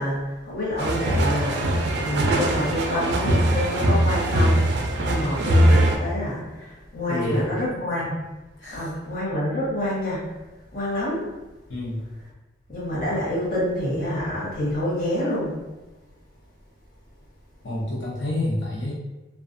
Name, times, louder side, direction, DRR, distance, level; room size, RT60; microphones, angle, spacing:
voice 1, 0.0-4.6 5.0-8.2 8.7-10.2 10.7-11.2 12.7-15.5, left 1 dB, 50° left, -7 dB, 0.9 m, -27 dB
sound 1, 0.8-6.0, right 1 dB, 65° right, 0.3 m, -21 dB
voice 2, 7.1-7.5 8.6-9.0 11.7-12.0 17.6-18.9, left 1 dB, 80° left, -6 dB, 0.6 m, -28 dB
2.5 x 2.2 x 2.5 m, 1.1 s
head